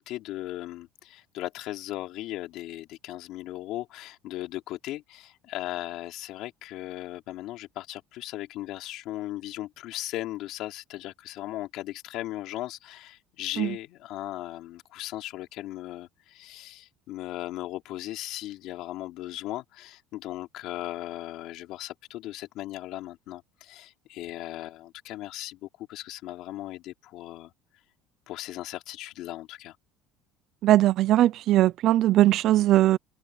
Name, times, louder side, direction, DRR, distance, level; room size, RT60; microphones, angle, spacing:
voice 1, 0.0-27.5 28.3-29.8, left 15 dB, 55° left, 3.2 m, -37 dB
voice 2, 30.6-33.0, right 14 dB, 45° right, 0.4 m, -20 dB
cardioid pair, 160°, 0 cm